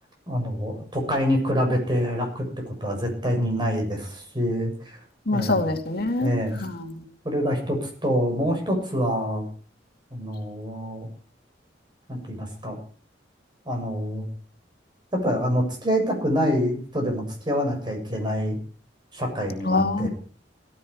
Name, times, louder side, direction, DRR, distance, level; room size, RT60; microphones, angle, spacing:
voice 1, 0.3-5.0 5.3-5.6 6.2-6.6 7.2-9.4 10.1-11.1 12.1-12.8 13.7-14.2 15.1-18.6 19.1-20.1, equal, 25° right, 2 dB, 7.3 m, -26 dB
voice 2, 5.3-6.3 6.6-7.0 19.7-20.1, left 2 dB, 55° left, 4 dB, 2.4 m, -25 dB
17.5 x 13.0 x 4.9 m, 0.43 s
head